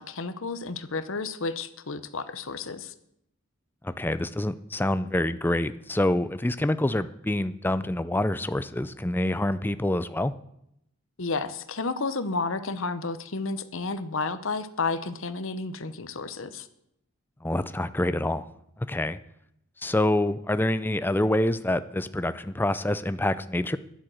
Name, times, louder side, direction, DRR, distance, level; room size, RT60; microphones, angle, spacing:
voice 1, 0.0-2.9 11.2-16.7, left 3 dB, 60° left, 12 dB, 0.9 m, -31 dB
voice 2, 3.8-10.3 17.4-18.5 18.8-19.2 19.8-23.8, left 1 dB, 10° left, 13 dB, 0.4 m, -26 dB
10.5 x 10.0 x 7.7 m, 0.78 s
head